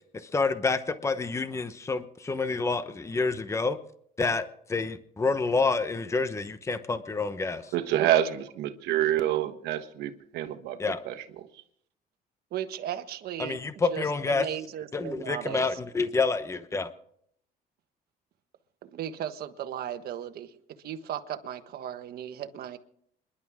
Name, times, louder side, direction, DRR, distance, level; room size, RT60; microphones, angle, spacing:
voice 1, 0.2-3.8 4.2-7.7 10.8-11.0 13.4-14.5 14.9-16.9, left 4 dB, 15° left, 11 dB, 0.9 m, -28 dB
voice 2, 7.7-10.8 11.0-11.2, right 12 dB, 85° right, 7 dB, 1.3 m, -27 dB
voice 3, 12.5-13.6 13.9-15.8 18.8-20.6 20.8-22.8, right 10 dB, 65° right, 9 dB, 1.3 m, -36 dB
27.0 x 11.5 x 3.6 m, 0.68 s
cardioid pair, 110°, 17 cm